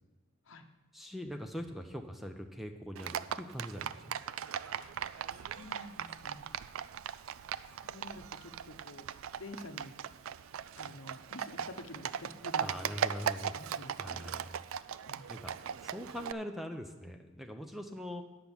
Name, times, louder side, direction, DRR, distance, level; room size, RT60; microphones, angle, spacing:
voice 1, 0.9-4.0 12.6-13.6 14.0-14.6 15.3-15.5 15.8-18.2, equal, ahead, 5 dB, 0.5 m, -42 dB
Livestock farm animals working animals, 3.0-16.3, right 8 dB, 70° right, 0.3 m, -39 dB
voice 2, 4.8-6.5 7.7-9.0 9.4-9.9 10.8-12.7 13.5-14.3 15.1-15.3, left 2 dB, 65° left, 7 dB, 0.8 m, -49 dB
10.0 x 5.8 x 7.0 m, 1.1 s
head